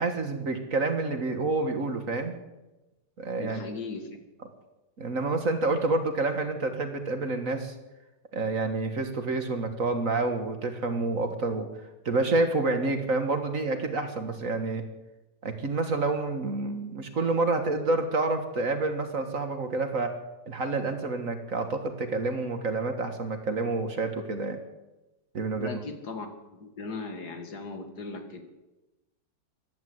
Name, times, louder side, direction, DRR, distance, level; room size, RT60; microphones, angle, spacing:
voice 1, 0.0-2.3 3.2-3.6 5.0-7.7 8.3-11.7 12.0-14.8 15.4-20.1 20.5-24.6 25.3-25.7, right 3 dB, 50° right, 7 dB, 1.8 m, -28 dB
voice 2, 3.4-4.1 25.6-26.3 26.5-28.4, left 3 dB, 60° left, 6 dB, 2.4 m, -38 dB
15.5 x 11.5 x 7.8 m, 1.0 s
omnidirectional pair, 2.0 m